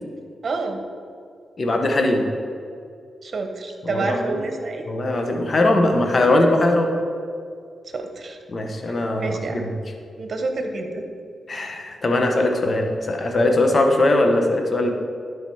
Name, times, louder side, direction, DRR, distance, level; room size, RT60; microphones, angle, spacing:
voice 1, 0.4-0.8 3.2-4.9 7.9-8.4 8.9-9.6 10.2-11.1, right 3 dB, 55° right, 5 dB, 1.2 m, -28 dB
voice 2, 1.6-2.2 3.8-4.4 4.9-6.9 8.5-9.7 11.5-14.9, left 2 dB, 45° left, 3 dB, 1.3 m, -20 dB
11.5 x 5.1 x 4.8 m, 2.3 s
cardioid pair, 60°, 0 cm